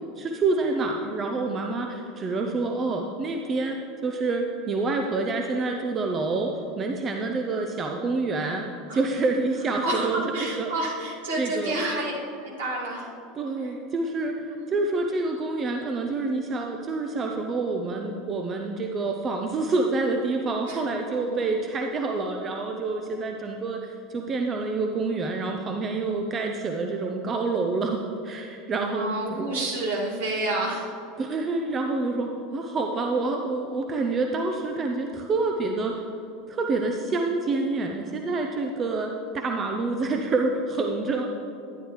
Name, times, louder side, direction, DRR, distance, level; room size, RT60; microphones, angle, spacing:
voice 1, 0.2-3.8 4.0-6.5 6.8-8.6 8.9-10.7 11.4-11.8 13.3-29.6 31.2-35.9 36.5-41.3, right 3 dB, 30° right, 3 dB, 0.7 m, -27 dB
voice 2, 9.8-13.1 14.6-14.8 20.7-21.5 28.9-30.9, right 2 dB, 70° right, -4 dB, 2.5 m, -30 dB
12.5 x 10.5 x 3.2 m, 2.8 s
figure-of-eight pair, 75°, 0 cm